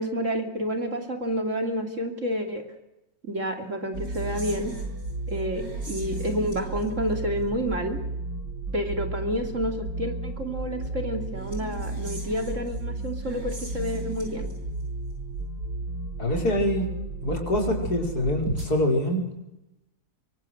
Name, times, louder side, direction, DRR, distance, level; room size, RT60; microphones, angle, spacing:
voice 1, 0.0-2.6 3.2-4.7 5.3-8.0 8.7-14.5, equal, 40° right, 5 dB, 3.2 m, -29 dB
sound 1, 3.9-18.7, right 2 dB, 65° right, 7.0 m, -33 dB
voice 2, 16.2-16.9 17.2-19.3, left 1 dB, 55° left, 2 dB, 5.7 m, -25 dB
24.5 x 24.0 x 7.9 m, 0.90 s
omnidirectional pair, 1.9 m